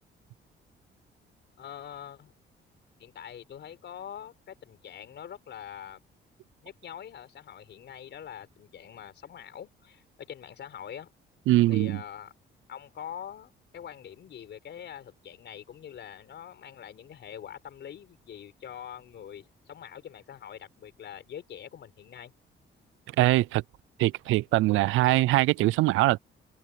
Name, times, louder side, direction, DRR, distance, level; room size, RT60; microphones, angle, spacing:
voice 1, 1.6-2.3 3.0-6.0 6.6-11.1 11.7-12.3 12.7-22.3, left 9 dB, 65° left, 4.4 m, -44 dB
voice 2, 11.5-12.0 23.2-23.6 24.0-26.2, right 17 dB, 85° right, 0.4 m, -22 dB
cardioid pair, 90°, 20 cm